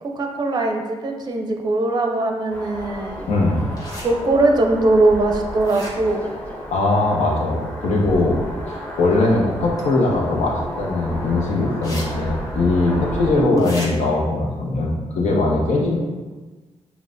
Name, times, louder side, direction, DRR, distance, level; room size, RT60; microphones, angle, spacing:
voice 1, 0.0-3.3 4.0-6.2 13.3-13.7, right 2 dB, 35° right, 3 dB, 0.5 m, -20 dB
sound 1, 2.5-13.5, equal, 15° left, 0.8 m, -32 dB
voice 2, 3.3-3.7 6.7-8.4 8.7-16.0, left 2 dB, 80° left, -2 dB, 1.0 m, -20 dB
sound 2, 3.8-4.1 5.6-6.2 9.8-9.9 11.8-12.0 12.4-12.5 13.6-13.9, left 1 dB, 30° left, 1.1 m, -35 dB
7.1 x 2.4 x 2.6 m, 1.3 s
cardioid pair, 105°, 12 cm